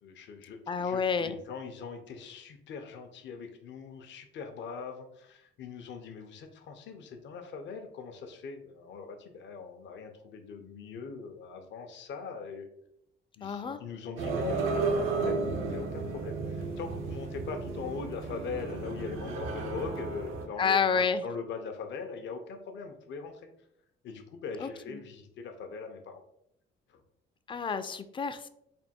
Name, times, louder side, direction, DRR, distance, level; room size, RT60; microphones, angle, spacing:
voice 1, 0.0-12.7 13.4-15.4 15.7-23.4 24.0-26.2 26.9-27.0, left 5 dB, 65° left, 5 dB, 0.6 m, -41 dB
voice 2, 0.7-1.3 13.4-13.8 20.6-21.2 24.6-25.0 27.5-28.5, left 6 dB, 25° left, 11 dB, 0.3 m, -29 dB
sound 1, 14.2-20.5, right 3 dB, 90° right, 0.6 m, -33 dB
3.4 x 2.2 x 4.2 m, 0.76 s
cardioid pair, 90°, 20 cm